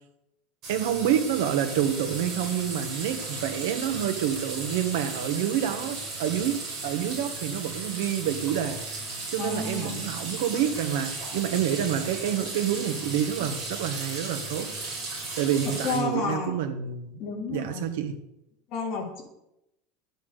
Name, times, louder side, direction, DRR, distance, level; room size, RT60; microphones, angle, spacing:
sound 1, 0.6-16.0, right 3 dB, 30° right, 5.6 m, -36 dB
voice 1, 0.7-8.8 9.3-14.7 15.4-17.2 17.5-18.2, right 9 dB, 70° right, 8 dB, 1.6 m, -28 dB
voice 2, 9.4-10.0 15.8-16.6 17.2-17.9 18.7-19.2, left 4 dB, 35° left, -1 dB, 3.2 m, -31 dB
11.5 x 8.4 x 6.7 m, 0.87 s
supercardioid pair, 175°, 0 cm